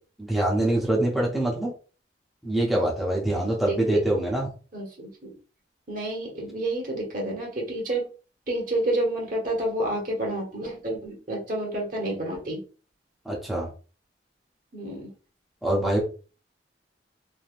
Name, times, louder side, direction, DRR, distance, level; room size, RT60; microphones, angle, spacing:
voice 1, 0.2-1.7 2.4-4.5 13.3-13.7 15.6-16.0, right 1 dB, ahead, -4 dB, 0.6 m, -24 dB
voice 2, 4.7-5.3 5.9-8.0 8.5-12.6 14.7-15.1, right 1 dB, 50° right, -1 dB, 1.1 m, -29 dB
3.3 x 2.7 x 2.4 m, 0.36 s
head